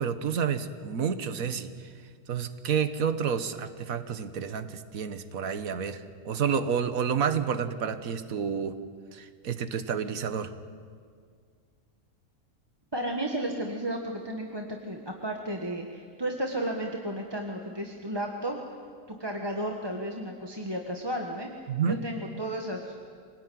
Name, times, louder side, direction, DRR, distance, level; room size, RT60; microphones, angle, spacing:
voice 1, 0.0-1.7 2.3-8.8 9.1-10.5 21.7-22.0, right 7 dB, 65° right, 10 dB, 1.6 m, -29 dB
voice 2, 12.9-18.6 19.1-22.9, right 1 dB, 15° right, 1 dB, 1.5 m, -33 dB
25.5 x 19.5 x 9.4 m, 2.1 s
omnidirectional pair, 1.6 m